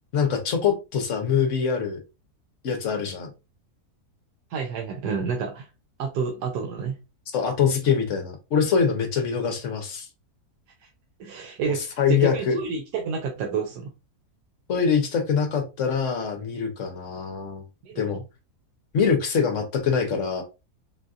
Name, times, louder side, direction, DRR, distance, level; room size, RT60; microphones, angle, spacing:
voice 1, 0.1-2.0 2.6-3.3 7.3-10.1 12.0-12.5 14.7-17.7 18.0-18.2 18.9-20.4, left 6 dB, 60° left, 0.9 m, -24 dB
voice 2, 4.5-5.7 6.0-6.9 8.7-8.8 11.2-13.9 17.8-18.2, right 5 dB, 85° right, 1.2 m, -29 dB
4.0 x 2.5 x 2.3 m
omnidirectional pair, 1.7 m